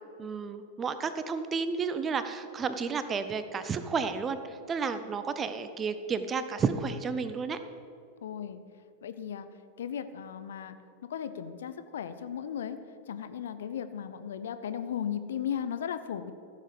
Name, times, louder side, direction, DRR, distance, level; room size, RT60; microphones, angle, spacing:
voice 1, 0.2-7.6, right 5 dB, 20° right, 11 dB, 0.6 m, -32 dB
voice 2, 8.2-8.6 9.0-9.5 9.8-10.8 11.1-12.8 13.1-16.3, left 8 dB, 60° left, 11 dB, 0.6 m, -36 dB
14.5 x 6.6 x 5.1 m, 2.5 s
figure-of-eight pair, 90°, 0 cm